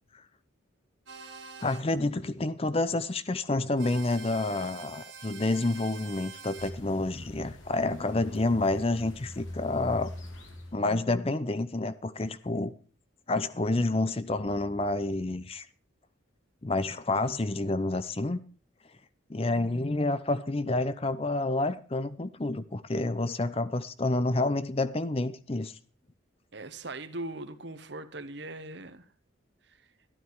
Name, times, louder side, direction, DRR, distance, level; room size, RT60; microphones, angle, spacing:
sound 1, 1.1-1.8 3.8-6.7, right 5 dB, 75° right, 2.8 m, -46 dB
voice 1, 1.6-10.1 10.7-12.7 13.3-15.7 16.6-18.4 19.3-25.8, left 2 dB, 30° left, 0.6 m, -29 dB
sound 2, 6.6-10.9, left 1 dB, 75° left, 3.0 m, -43 dB
voice 2, 26.5-29.1 29.7-29.8, right 2 dB, 55° right, 1.1 m, -40 dB
12.5 x 12.5 x 4.8 m
head